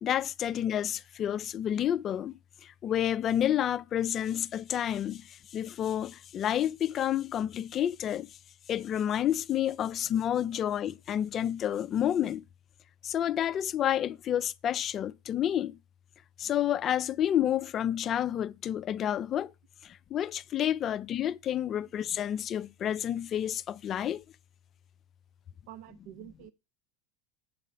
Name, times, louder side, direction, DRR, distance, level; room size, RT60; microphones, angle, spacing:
voice 1, 0.0-8.3 8.7-12.4 13.0-15.8 16.4-19.5 19.8-24.2, left 10 dB, 35° left, 0.3 m, -30 dB
voice 2, 25.7-26.5, right 12 dB, 60° right, 0.4 m, -48 dB
8.3 x 3.8 x 5.5 m
hypercardioid pair, 85°, 0 cm